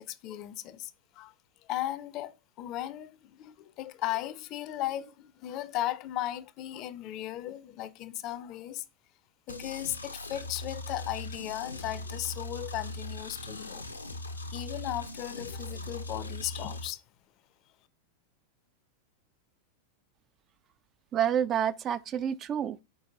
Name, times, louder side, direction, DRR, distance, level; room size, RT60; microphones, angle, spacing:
voice 1, 0.0-1.3 1.6-8.8 9.5-13.8 14.5-17.0, left 14 dB, 40° left, 0.5 m, -36 dB
sound 1, 9.5-16.9, left 2 dB, 80° left, 0.7 m, -40 dB
voice 2, 21.1-22.8, right 9 dB, 30° right, 0.3 m, -28 dB
4.8 x 4.7 x 5.4 m
figure-of-eight pair, 90°, 0 cm